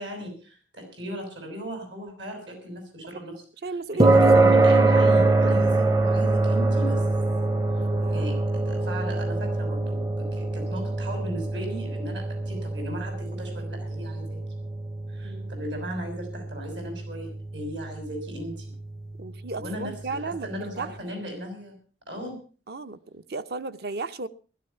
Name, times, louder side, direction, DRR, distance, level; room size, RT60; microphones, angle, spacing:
voice 1, 0.0-3.4 3.9-7.0 7.7-7.8 8.1-14.4 15.1-18.7 19.6-21.7 22.1-22.4, right 1 dB, 80° right, 6.7 m, -37 dB
voice 2, 3.6-4.2 7.8-8.4 15.2-15.6 19.2-20.9 22.7-24.3, right 3 dB, 60° right, 0.8 m, -35 dB
sound 1, 4.0-20.5, right 2 dB, 20° right, 0.6 m, -24 dB
16.0 x 12.5 x 5.7 m
head